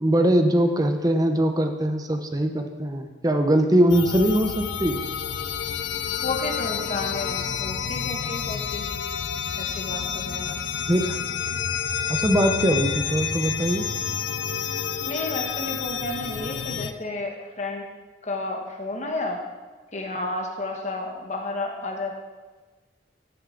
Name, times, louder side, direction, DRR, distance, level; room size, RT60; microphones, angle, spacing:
voice 1, 0.0-5.0 10.9-11.2 12.1-13.9, right 1 dB, 20° right, 6 dB, 0.7 m, -21 dB
sound 1, 3.9-16.9, left 7 dB, 75° left, 0.5 m, -29 dB
voice 2, 6.2-8.9 9.6-10.6 15.1-17.9 18.2-19.4 19.9-22.1, left 2 dB, 35° left, 1 dB, 1.3 m, -32 dB
15.0 x 6.7 x 3.8 m, 1.3 s
head